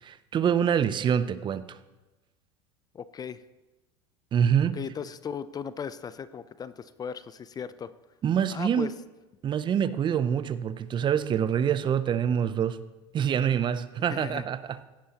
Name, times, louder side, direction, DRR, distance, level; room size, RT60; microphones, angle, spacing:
voice 1, 0.0-1.8 4.3-4.8 8.2-8.9 9.4-12.8 13.1-14.9, right 8 dB, 35° right, 14 dB, 0.5 m, -26 dB
voice 2, 2.9-3.4 4.7-7.9 8.5-8.9 14.1-14.4, left 7 dB, 25° left, 15 dB, 0.4 m, -37 dB
16.0 x 10.0 x 2.9 m, 1.1 s
hypercardioid pair, 90°, 15 cm